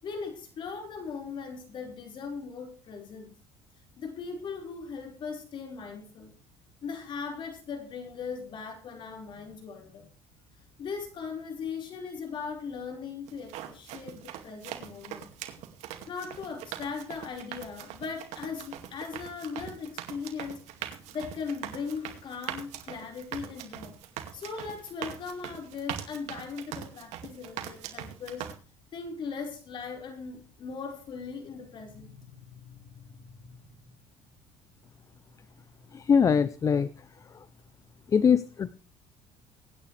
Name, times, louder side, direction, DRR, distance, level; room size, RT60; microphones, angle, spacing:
voice 1, 0.0-3.3 4.0-6.3 6.8-10.1 10.8-15.3 16.1-23.9 24.3-28.5 28.9-33.7, left 5 dB, 45° left, 3 dB, 5.0 m, -39 dB
sound 1, 13.3-28.5, right 11 dB, 75° right, 2.3 m, -41 dB
voice 2, 35.9-36.9 38.1-38.7, left 6 dB, 30° left, 16 dB, 0.6 m, -22 dB
23.5 x 9.8 x 3.4 m, 0.34 s
cardioid pair, 130°, 11 cm